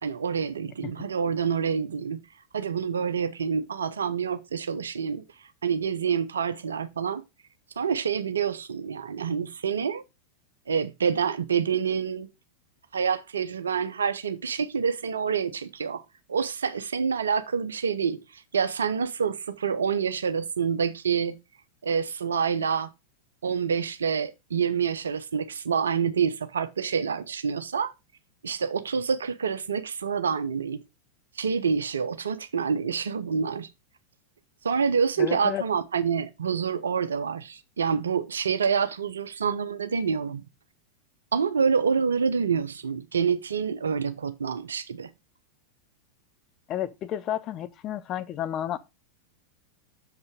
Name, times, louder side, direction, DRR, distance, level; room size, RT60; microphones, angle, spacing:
voice 1, 0.0-2.2 2.5-5.2 5.6-7.2 7.8-10.0 10.7-12.3 12.9-16.0 16.3-21.4 21.8-22.9 23.4-27.9 28.4-30.8 31.4-33.7 34.6-40.4 41.3-45.1, right 6 dB, 70° right, 0.7 m, -27 dB
voice 2, 35.2-35.6 46.7-48.8, left 11 dB, 35° left, 0.7 m, -31 dB
6.8 x 5.4 x 5.1 m
figure-of-eight pair, 90°, 0 cm